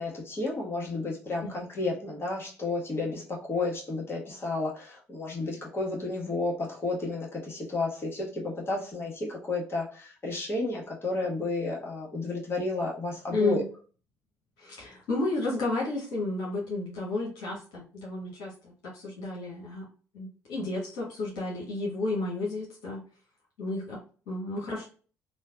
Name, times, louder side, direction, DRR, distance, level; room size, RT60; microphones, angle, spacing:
voice 1, 0.0-13.6, left 2 dB, 35° left, -2 dB, 1.4 m, -32 dB
voice 2, 13.3-13.6 14.6-19.8 20.1-23.0 23.6-24.0 24.3-24.9, left 2 dB, 75° left, -5 dB, 1.0 m, -32 dB
3.2 x 2.3 x 2.2 m, 0.39 s
hypercardioid pair, 45°, 7 cm